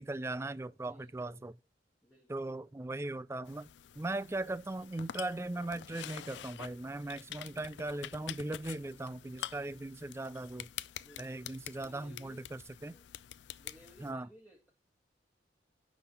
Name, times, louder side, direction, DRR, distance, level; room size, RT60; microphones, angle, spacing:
voice 1, 0.0-1.6 2.3-3.7 4.0-10.7 11.2-12.9 14.0-14.3, right 2 dB, 15° right, 0.3 m, -39 dB
voice 2, 0.7-1.5 2.0-2.9 11.0-12.5 12.8-13.0 13.6-14.7, equal, 10° left, 1.9 m, -60 dB
sound 1, 3.5-14.1, left 11 dB, 85° left, 0.4 m, -47 dB
11.0 x 3.9 x 6.6 m
head